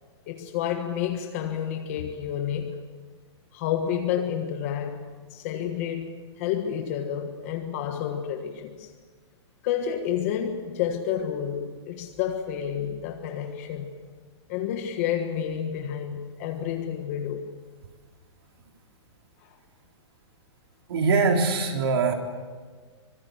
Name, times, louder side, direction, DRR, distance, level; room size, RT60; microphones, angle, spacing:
voice 1, 0.3-2.8 3.5-8.9 9.6-13.9 14.5-17.5 19.4-19.6, left 9 dB, 30° left, 1.5 m, -30 dB
voice 2, 20.9-22.1, right 4 dB, 60° right, 3.7 m, -22 dB
25.5 x 24.0 x 7.9 m
hypercardioid pair, 175°, 15 cm